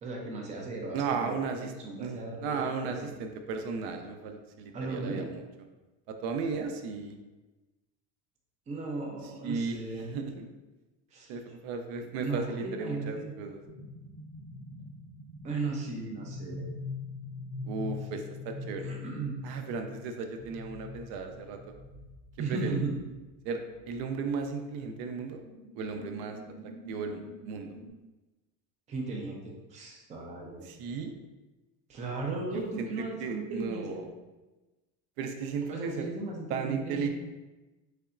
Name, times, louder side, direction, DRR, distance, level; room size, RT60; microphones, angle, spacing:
voice 1, 0.0-1.4 1.7-3.2 4.7-5.2 8.7-10.1 11.1-11.3 12.2-13.3 15.4-16.6 18.8-19.4 22.4-22.9 28.9-30.6 31.9-34.0 35.7-37.1, right 3 dB, 20° right, 0 dB, 0.4 m, -36 dB
voice 2, 0.9-1.7 2.0-5.4 6.1-7.1 9.4-10.5 11.3-13.6 17.6-18.9 19.4-21.6 22.5-22.8 23.4-23.6 23.9-25.4 25.8-26.4 26.9-27.7 30.6-31.1 32.5-34.1 35.2-36.1 36.5-37.1, right 5 dB, 70° right, 6 dB, 0.5 m, -35 dB
sound 1, 13.7-23.4 23.7-24.0 25.4-27.9, left 3 dB, 90° right, 1.4 m, -44 dB
3.8 x 3.3 x 2.4 m, 1.1 s
cardioid pair, 150°, 38 cm